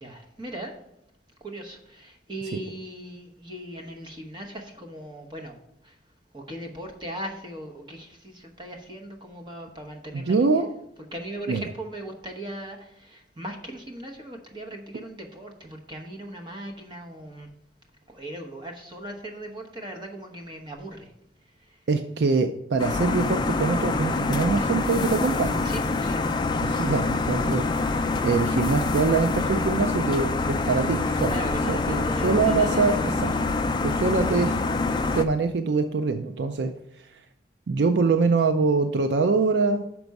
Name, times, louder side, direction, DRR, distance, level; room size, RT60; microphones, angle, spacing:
voice 1, 0.0-0.7 1.4-5.6 5.8-6.0 6.3-10.6 11.1-17.5 18.1-21.1 21.7-21.8 25.6-26.3 31.3-33.0 33.3-33.4, right 1 dB, 25° right, 3 dB, 1.0 m, -38 dB
voice 2, 10.1-10.7 11.5-11.7 21.9-25.6 26.6-31.3 31.7-32.9 33.2-33.3 33.8-34.6 35.1-36.7 37.7-39.8, right 4 dB, 75° right, 7 dB, 0.4 m, -24 dB
sound 1, 22.8-35.2, left 3 dB, 25° left, 0.4 m, -25 dB
6.0 x 4.6 x 5.2 m, 0.82 s
head